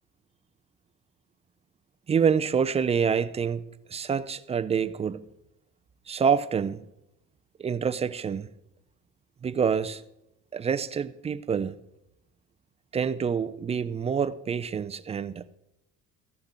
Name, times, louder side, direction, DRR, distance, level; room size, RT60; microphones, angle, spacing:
voice 1, 2.1-3.6 3.9-5.3 6.1-6.9 7.6-8.5 9.4-10.0 10.5-11.8 12.9-15.6, right 6 dB, 20° right, 0.4 m, -27 dB
15.0 x 11.5 x 3.9 m
cardioid pair, 160°, 32 cm